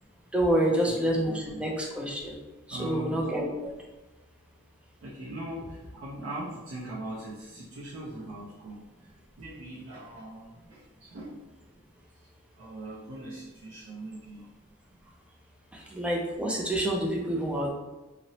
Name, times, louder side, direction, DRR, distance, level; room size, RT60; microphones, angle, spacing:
voice 1, 0.3-2.3 2.7-3.7 15.9-17.7, right 1 dB, 5° right, -1 dB, 0.3 m, -27 dB
voice 2, 1.3-1.6 2.7-3.3 5.0-11.4 12.1-12.3 12.6-14.5 15.7-16.0, right 1 dB, 75° right, -8 dB, 0.5 m, -41 dB
2.8 x 2.0 x 2.7 m, 1.1 s
head